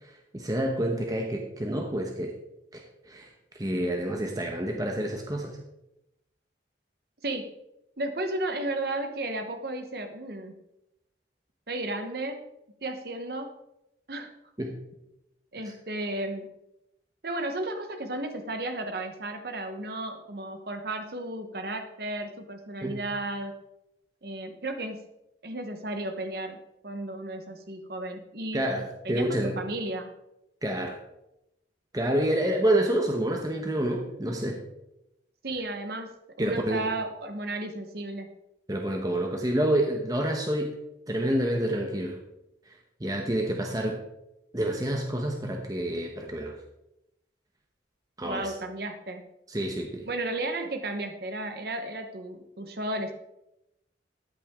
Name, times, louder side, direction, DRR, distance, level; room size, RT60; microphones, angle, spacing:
voice 1, 0.3-2.3 2.7-3.3 3.5-5.6 14.6-14.8 15.6-15.7 22.8-23.0 28.5-29.6 30.6-31.0 31.9-34.6 36.4-36.9 38.7-40.8 41.1-42.2 42.7-42.8 43.0-44.0 44.5-46.6 48.2-48.5 49.5-50.1, right 1 dB, 20° right, 2 dB, 1.0 m, -28 dB
voice 2, 7.2-7.5 8.0-10.5 11.7-12.4 12.8-13.5 14.1-14.3 15.5-16.5 17.2-23.5 24.2-25.0 25.4-26.6 26.8-28.7 29.0-30.1 35.4-38.3 48.2-49.2 50.1-53.1, right 2 dB, 55° right, 6 dB, 1.1 m, -34 dB
14.0 x 8.6 x 3.7 m, 0.87 s
head